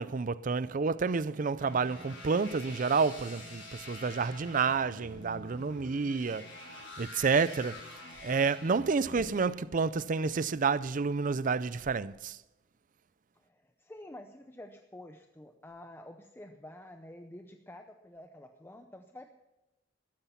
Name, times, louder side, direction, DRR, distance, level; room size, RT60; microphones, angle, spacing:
voice 1, 0.0-6.5 7.0-7.8 8.2-12.4, right 5 dB, 45° right, 0.5 m, -29 dB
sound 1, 1.6-9.3, left 2 dB, 80° left, 6.8 m, -47 dB
voice 2, 13.4-19.3, left 1 dB, 10° left, 0.6 m, -49 dB
15.0 x 12.0 x 5.8 m
head